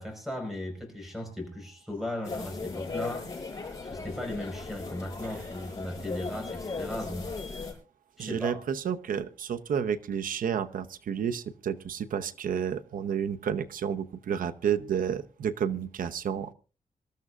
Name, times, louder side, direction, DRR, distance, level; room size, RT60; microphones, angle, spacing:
voice 1, 0.0-3.3 3.9-7.4 8.2-8.6, left 1 dB, ahead, 4 dB, 4.8 m, -37 dB
sound 1, 2.2-7.7, left 4 dB, 25° left, 7.7 m, -37 dB
voice 2, 8.2-16.5, right 8 dB, 90° right, 10 dB, 0.8 m, -31 dB
26.0 x 13.5 x 2.5 m, 0.34 s
wide cardioid pair, 140°, 14 cm